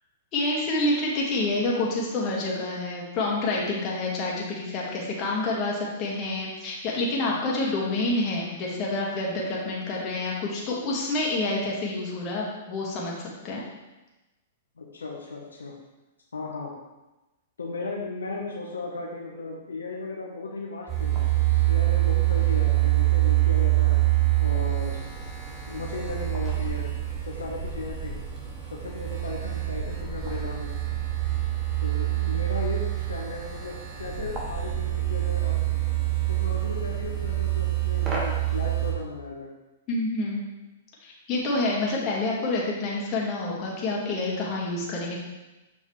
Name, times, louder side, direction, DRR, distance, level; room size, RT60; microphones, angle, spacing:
voice 1, 0.3-13.6 39.9-40.4 41.0-45.2, left 2 dB, 35° left, -3 dB, 2.0 m, -28 dB
voice 2, 14.8-15.7 16.3-16.7 17.6-21.3 21.7-24.0 24.4-25.0 25.7-26.9 27.2-28.3 28.7-30.7 31.8-35.6 36.4-39.5, left 3 dB, 85° left, -2 dB, 1.1 m, -36 dB
sound 1, 20.9-38.9, right 15 dB, 25° right, 1.6 m, -26 dB
7.0 x 5.5 x 3.2 m, 1.1 s
hypercardioid pair, 115°, 0 cm